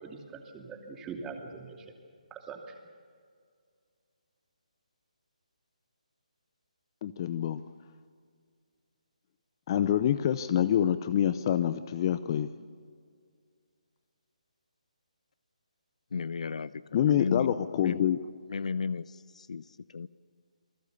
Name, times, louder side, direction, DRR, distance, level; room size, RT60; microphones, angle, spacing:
voice 1, 0.0-1.9 2.3-2.7, right 5 dB, 15° right, 2 dB, 2.7 m, -42 dB
voice 2, 7.0-7.6 9.7-12.5 16.9-18.2, left 10 dB, 35° left, 14 dB, 0.7 m, -26 dB
voice 3, 16.1-18.1 18.5-20.1, left 5 dB, 60° left, 18 dB, 0.6 m, -35 dB
28.0 x 19.5 x 6.9 m, 2.1 s
figure-of-eight pair, 150°, 4 cm